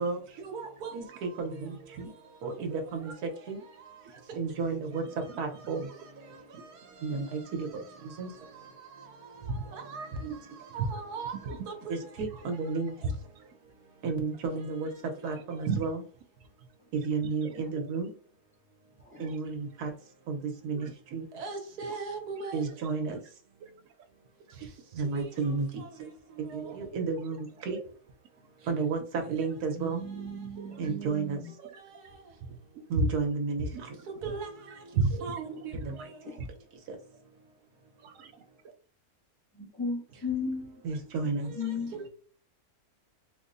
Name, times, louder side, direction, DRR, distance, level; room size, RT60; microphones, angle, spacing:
voice 1, 0.0-2.1 2.4-3.6 4.4-5.0 5.4-5.9 7.0-8.3 9.7-10.4 10.7-11.3 11.7-12.9 14.0-14.9 15.2-15.9 16.9-18.1 19.2-19.9 20.3-20.4 20.6-23.2 25.0-25.9 26.5-27.8 28.7-29.0 29.3-30.0 30.8-31.4 32.9-33.7 34.2-34.5 35.6-35.9 40.8-41.6 41.9-42.0, right 4 dB, 90° right, 1.3 m, -33 dB
voice 2, 2.7-3.2 4.0-4.8 5.2-5.4 5.8-6.0 6.5-6.6 7.1-7.2 8.2-8.3 9.4-10.3 10.6-11.7 12.2-12.4 13.0-13.5 14.0-14.1 15.2-15.9 16.4-16.7 17.2-17.9 19.1-19.4 20.7-20.9 21.8-22.0 22.3-23.3 23.6-23.9 24.5-25.1 25.4-25.5 26.6-27.2 27.6-27.8 28.7-28.8 29.2-29.5 30.1-30.2 30.6-30.9 31.6-32.0 32.4-33.2 33.6-35.4 35.7-36.0 36.4-36.5 38.0-38.4 40.9-41.8, right 3 dB, 70° right, 0.8 m, -37 dB
voice 3, 29.8-31.5 36.3-36.4 39.6-40.8 41.5-41.9, left 3 dB, 20° left, 0.3 m, -36 dB
4.3 x 2.0 x 2.5 m
omnidirectional pair, 1.6 m